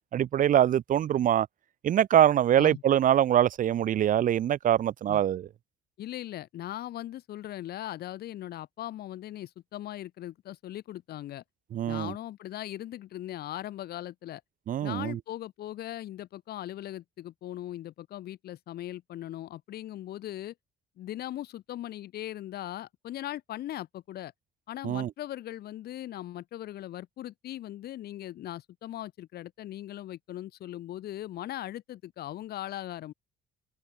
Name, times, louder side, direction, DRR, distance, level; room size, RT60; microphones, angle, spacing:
voice 1, 0.1-1.5 1.8-5.5 11.7-12.1 14.7-15.2 24.8-25.1, right 11 dB, 50° right, 1.1 m, -24 dB
voice 2, 6.0-11.4 11.9-14.4 14.8-20.5 21.0-24.3 24.7-33.1, left 13 dB, 70° left, 7.0 m, -39 dB
cardioid pair, 110°, 17 cm